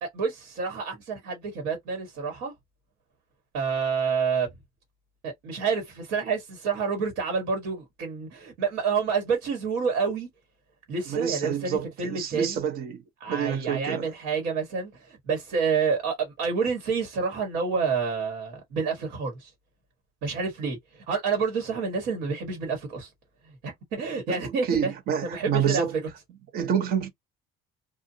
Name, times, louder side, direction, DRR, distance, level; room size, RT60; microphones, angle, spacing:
voice 1, 0.0-2.5 3.5-4.5 5.2-10.3 10.9-12.6 13.2-19.5 20.2-20.8 21.1-23.1 23.6-24.9 25.3-25.8, right 5 dB, 85° right, 1.5 m, -28 dB
voice 2, 11.1-14.1 24.3-25.9 26.5-27.1, right 8 dB, 70° right, 1.0 m, -28 dB
2.6 x 2.5 x 2.7 m
cardioid pair, 105°, 17 cm